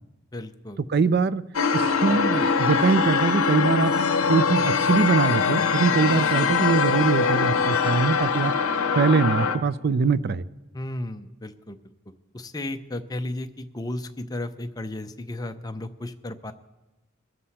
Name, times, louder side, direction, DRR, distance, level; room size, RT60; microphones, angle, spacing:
voice 1, 0.3-0.8 10.7-11.8 12.1-16.5, left 1 dB, 20° left, 7 dB, 0.6 m, -34 dB
voice 2, 0.9-1.4 1.7-3.9 4.3-8.5 9.0-10.4, right 4 dB, 50° right, 17 dB, 0.4 m, -22 dB
sound 1, 1.5-9.6, left 5 dB, 75° left, 0.7 m, -22 dB
21.5 x 7.6 x 4.2 m, 1.1 s
head